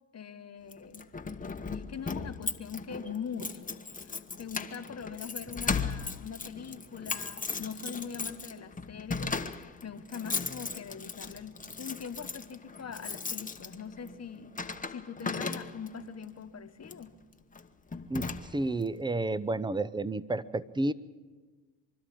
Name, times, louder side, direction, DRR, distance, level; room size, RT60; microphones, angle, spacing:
voice 1, 0.1-1.1 1.7-14.6 14.9-17.1, left 6 dB, 35° left, 8 dB, 1.4 m, -42 dB
Keys jangling, 0.7-16.1 16.8-17.1 17.5-17.7 17.9-18.8, left 4 dB, 15° left, 1.1 m, -37 dB
voice 2, 18.1-20.9, right 2 dB, 10° right, 17 dB, 0.7 m, -31 dB
25.0 x 12.5 x 8.5 m, 1.4 s
hypercardioid pair, 70°, 46 cm